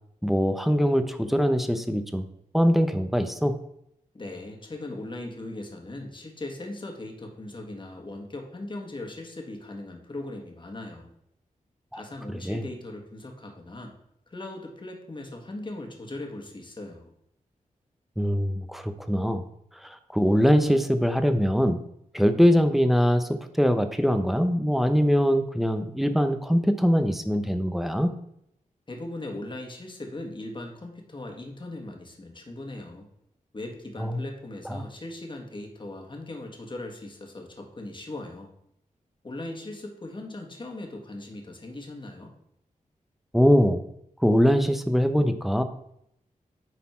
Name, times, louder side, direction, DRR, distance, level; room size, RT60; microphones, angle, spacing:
voice 1, 0.2-2.3 2.5-3.6 11.9-12.0 12.3-12.6 18.2-19.4 19.8-21.8 22.1-28.1 34.0-34.2 34.7-34.8 43.3-43.8 44.2-45.6, equal, ahead, 9 dB, 0.7 m, -22 dB
voice 2, 4.1-11.1 11.9-13.9 14.3-17.1 28.9-33.1 33.5-38.5 39.2-42.3, left 2 dB, 35° left, 2 dB, 1.7 m, -39 dB
9.4 x 4.2 x 4.4 m, 0.76 s
wide cardioid pair, 75°, 14 cm